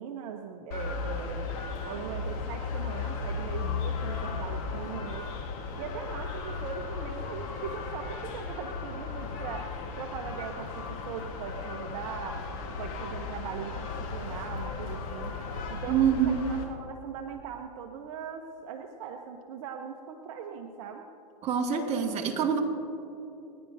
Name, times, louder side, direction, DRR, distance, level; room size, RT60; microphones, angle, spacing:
voice 1, 0.0-5.3 5.8-12.4 12.8-15.4 15.7-16.0 16.2-21.0, right 7 dB, 55° right, 3 dB, 1.0 m, -40 dB
sound 1, 0.7-16.6, left 4 dB, 55° left, 2.1 m, -36 dB
voice 2, 15.9-16.4 21.4-22.6, right 8 dB, 30° right, -1 dB, 2.0 m, -25 dB
29.0 x 10.5 x 2.7 m, 2.9 s
hypercardioid pair, 125°, 21 cm